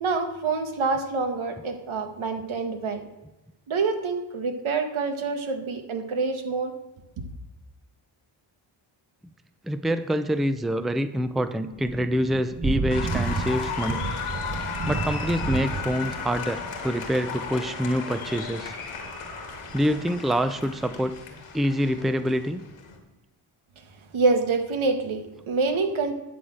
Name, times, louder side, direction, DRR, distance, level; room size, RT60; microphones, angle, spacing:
voice 1, 0.0-3.0 3.7-6.7 24.1-26.1, right 4 dB, 70° right, 6 dB, 1.5 m, -26 dB
voice 2, 9.6-14.0 14.9-18.7 19.7-21.2 21.5-22.6, equal, ahead, 11 dB, 0.6 m, -26 dB
Thunder / Rain, 11.7-21.2, right 4 dB, 30° right, 1.0 m, -33 dB
Applause, 12.9-23.0, left 6 dB, 85° left, 2.0 m, -35 dB
11.0 x 4.1 x 7.7 m, 1.0 s
cardioid pair, 60°, 49 cm